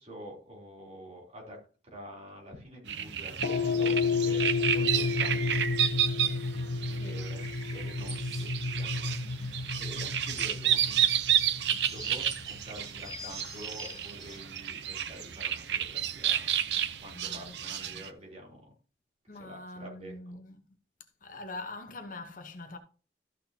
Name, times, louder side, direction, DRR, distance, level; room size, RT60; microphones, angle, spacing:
voice 1, 0.0-1.6 1.9-11.3 11.6-16.6 17.0-18.7 19.3-20.1, equal, 35° right, 3.5 m, -48 dB
sound 1, 2.9-18.1, right 10 dB, 75° right, 0.7 m, -31 dB
sound 2, 3.4-11.9, left 4 dB, 70° left, 0.8 m, -31 dB
voice 2, 6.9-7.3 9.2-9.7 17.1-18.1 19.3-20.6 21.2-22.8, left 2 dB, 50° left, 1.1 m, -44 dB
sound 3, 7.4-14.4, equal, 20° right, 4.1 m, -47 dB
13.5 x 6.6 x 2.8 m
head